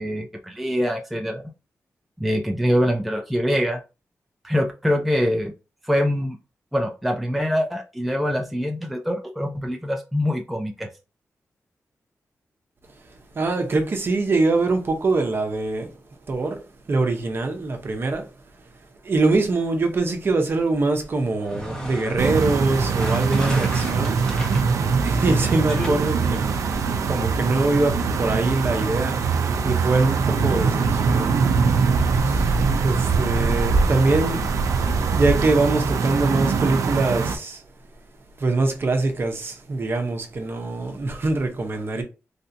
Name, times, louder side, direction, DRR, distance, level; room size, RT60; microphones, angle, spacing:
voice 1, 0.0-1.4 2.2-3.8 4.4-5.5 5.9-6.4 6.7-10.9, equal, ahead, 0.4 m, -24 dB
voice 2, 13.3-16.0 16.3-18.3 19.0-24.3 25.0-29.2 29.6-31.5 32.2-32.5 32.8-34.5 35.1-37.6 38.4-42.0, right 3 dB, 45° right, 0.8 m, -23 dB
sound 1, 21.3-26.8, equal, 15° left, 0.9 m, -35 dB
sound 2, 22.2-37.4, right 5 dB, 90° right, 0.4 m, -22 dB
3.3 x 2.7 x 2.7 m
wide cardioid pair, 125°, 5 cm